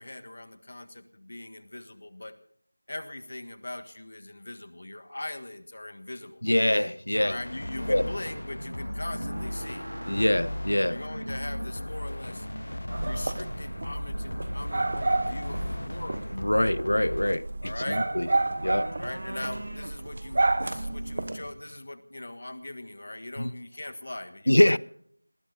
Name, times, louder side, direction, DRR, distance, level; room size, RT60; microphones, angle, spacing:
voice 1, 0.0-2.3 2.9-6.4 7.2-9.9 10.9-12.5 13.0-16.2 17.6-18.0 19.0-24.8, left 1 dB, 40° left, 1.5 m, -40 dB
voice 2, 6.4-7.4 7.9-8.1 10.1-11.0 16.3-18.3 18.6-18.9 23.4-23.5 24.5-24.8, left 1 dB, 85° left, 0.6 m, -24 dB
sound 1, 6.4-14.7 15.8-16.3 16.7-21.9, right 1 dB, 60° right, 1.3 m, -43 dB
sound 2, 7.1-17.3, left 1 dB, 65° left, 1.1 m, -36 dB
sound 3, 12.9-21.5, right 2 dB, 25° right, 1.2 m, -31 dB
19.5 x 19.0 x 3.9 m
figure-of-eight pair, 175°, 0 cm